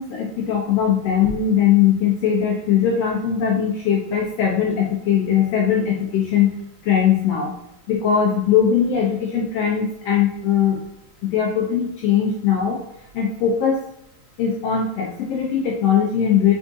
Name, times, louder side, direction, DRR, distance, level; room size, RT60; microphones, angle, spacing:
voice 1, 0.0-6.6 6.8-7.5 7.9-10.8 11.2-12.8 13.1-13.8 14.4-16.5, left 8 dB, 90° left, -2 dB, 1.4 m, -20 dB
4.9 x 3.5 x 2.6 m, 0.80 s
omnidirectional pair, 3.6 m